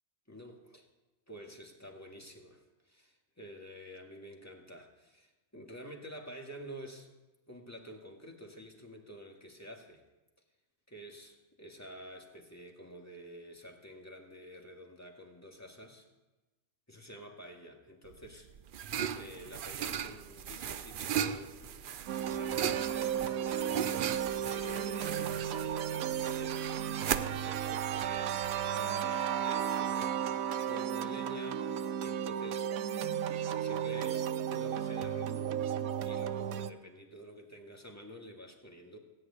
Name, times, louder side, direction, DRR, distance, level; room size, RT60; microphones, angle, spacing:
voice 1, 0.3-0.8 1.3-7.1 7.5-10.0 10.9-16.1 16.9-18.5 19.1-22.0 22.3-32.7 33.0-35.4 36.0-39.0, equal, 10° left, 1 dB, 2.0 m, -49 dB
sound 1, 18.1-28.7, right 8 dB, 60° right, 0.5 m, -38 dB
sound 2, 22.1-36.7, right 9 dB, 85° right, 1.1 m, -34 dB
16.5 x 6.4 x 9.7 m, 1.1 s
omnidirectional pair, 1.4 m